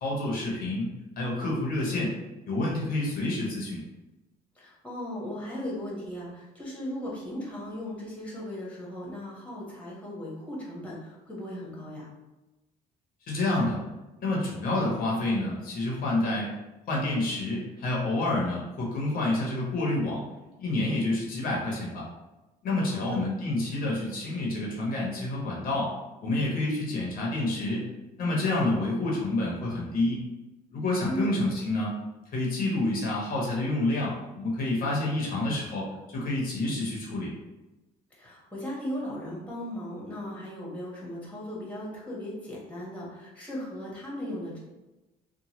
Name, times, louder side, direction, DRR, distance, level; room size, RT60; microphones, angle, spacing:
voice 1, 0.0-0.9 1.2-2.1 2.5-3.8 13.3-13.8 14.2-16.5 16.9-20.2 20.6-22.1 22.6-25.9 26.2-27.8 28.2-30.2 30.7-32.0 32.3-37.3, left 2 dB, 60° left, -3 dB, 0.8 m, -28 dB
voice 2, 4.5-12.1 22.9-23.2 31.1-31.4 38.1-44.6, left 1 dB, 10° left, -5 dB, 1.1 m, -37 dB
2.9 x 2.1 x 2.9 m, 1.1 s
cardioid pair, 110°, 17 cm